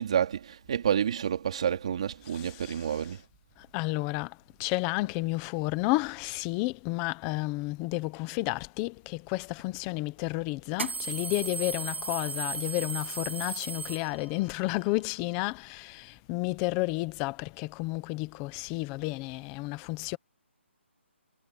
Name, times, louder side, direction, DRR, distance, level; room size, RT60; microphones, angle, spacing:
voice 1, 0.0-3.2, right 8 dB, 30° right, 2.8 m, -29 dB
voice 2, 2.3-2.9 3.6-20.2, left 21 dB, 10° left, 0.6 m, -31 dB
sound 1, 9.6-9.7 10.7-14.5, right 4 dB, 70° right, 7.0 m, -35 dB
hypercardioid pair, 180°, 7 cm